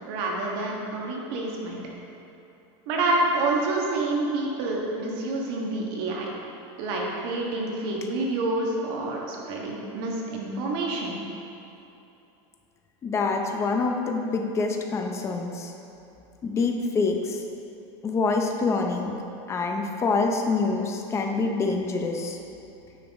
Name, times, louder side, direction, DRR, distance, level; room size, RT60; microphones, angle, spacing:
voice 1, 0.1-1.8 2.9-6.3 6.8-11.2, right 2 dB, 55° right, -2 dB, 1.5 m, -28 dB
voice 2, 13.0-15.7 16.4-17.4 18.0-19.1 19.5-22.4, left 4 dB, 20° left, 3 dB, 0.6 m, -26 dB
9.6 x 5.9 x 3.6 m, 2.9 s
supercardioid pair, 155°, 15 cm